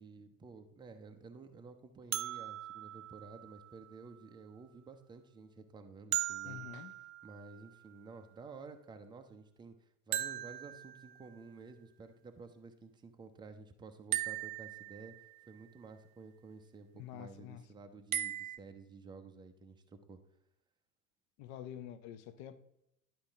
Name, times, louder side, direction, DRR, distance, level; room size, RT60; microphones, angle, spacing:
voice 1, 0.0-20.2, right 4 dB, 10° right, 6 dB, 0.6 m, -52 dB
sound 1, 2.1-4.1 6.1-7.9 10.1-11.5 14.1-15.4 18.1-18.6, right 13 dB, 60° right, 0.6 m, -39 dB
voice 2, 6.4-6.9 17.0-17.6 21.4-22.6, left 10 dB, 35° left, 13 dB, 0.7 m, -47 dB
11.5 x 4.5 x 3.5 m, 0.79 s
figure-of-eight pair, 80°, 47 cm